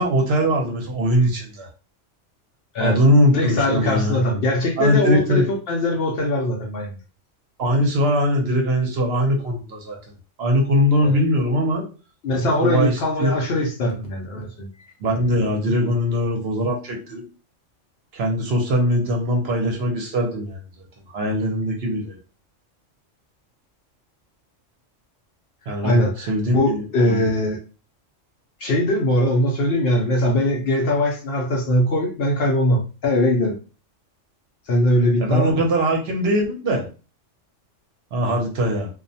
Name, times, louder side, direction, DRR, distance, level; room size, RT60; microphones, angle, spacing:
voice 1, 0.0-1.7 2.8-4.2 4.8-5.4 7.6-10.0 10.4-11.8 12.6-13.3 15.0-17.2 18.1-20.6 21.1-22.1 25.7-27.2 35.2-36.9 38.1-38.9, equal, 60° right, 0 dB, 0.8 m, -21 dB
voice 2, 3.3-7.0 11.0-11.2 12.2-14.7 25.8-27.6 28.6-33.6 34.7-35.5, left 1 dB, 60° left, 0 dB, 0.7 m, -21 dB
2.4 x 2.1 x 2.6 m, 0.33 s
omnidirectional pair, 1.3 m